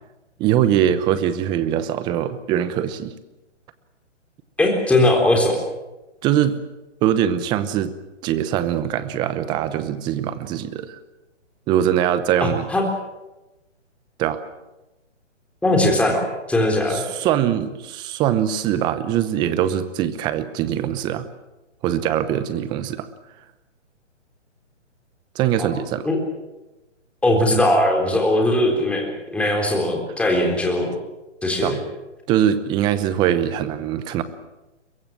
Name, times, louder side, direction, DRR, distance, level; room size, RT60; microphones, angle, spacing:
voice 1, 0.4-3.1 6.2-6.6 7.0-7.9 8.2-11.0 11.7-12.7 14.2-14.4 16.9-21.3 21.8-23.1 25.3-26.1 31.6-31.8 32.3-34.2, right 10 dB, 10° right, 13 dB, 0.8 m, -22 dB
voice 2, 4.6-5.6 12.4-12.8 15.6-17.1 25.6-25.7 26.0-26.2 27.2-31.0 31.4-31.8, left 1 dB, 5° left, 1 dB, 3.7 m, -19 dB
22.5 x 22.5 x 7.6 m, 1.0 s
hypercardioid pair, 145°, 37 cm